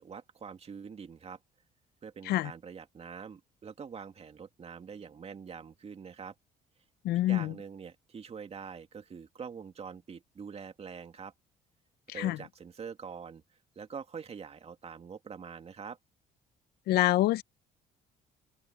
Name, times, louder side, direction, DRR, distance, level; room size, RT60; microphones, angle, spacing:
voice 1, 0.0-1.4 2.0-6.3 7.3-11.3 12.1-13.4 13.8-16.0, right 6 dB, 40° right, 2.4 m, -44 dB
voice 2, 7.0-7.5 12.2-12.4 16.9-17.4, left 15 dB, 75° left, 0.6 m, -26 dB
open air
cardioid pair, 95°, 17 cm